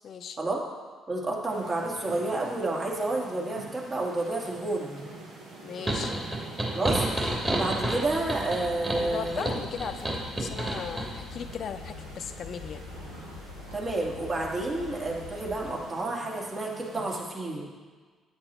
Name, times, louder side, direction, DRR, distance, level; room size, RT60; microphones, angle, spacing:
voice 1, 0.0-0.4 5.6-6.2 8.9-12.8, left 7 dB, 55° left, 9 dB, 0.7 m, -37 dB
voice 2, 1.1-5.1 6.7-7.0 7.5-9.4 13.7-17.7, right 2 dB, 35° right, -2 dB, 2.4 m, -30 dB
sound 1, 1.5-17.2, right 2 dB, 70° right, 1.7 m, -47 dB
sound 2, 5.9-11.1, right 1 dB, 20° right, 2.7 m, -30 dB
sound 3, 7.3-15.9, left 4 dB, 85° left, 1.0 m, -43 dB
8.8 x 8.7 x 4.3 m, 1.5 s
hypercardioid pair, 45°, 0 cm